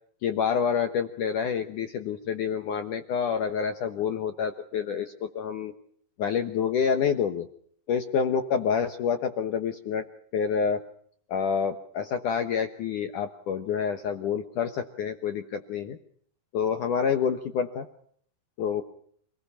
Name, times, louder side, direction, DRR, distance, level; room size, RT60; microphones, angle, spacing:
voice 1, 0.2-5.7 6.2-7.5 7.9-10.1 10.3-10.8 11.3-16.0 16.5-17.9 18.6-18.8, left 7 dB, 75° left, 7 dB, 1.8 m, -28 dB
28.0 x 20.5 x 5.8 m, 0.62 s
omnidirectional pair, 5.5 m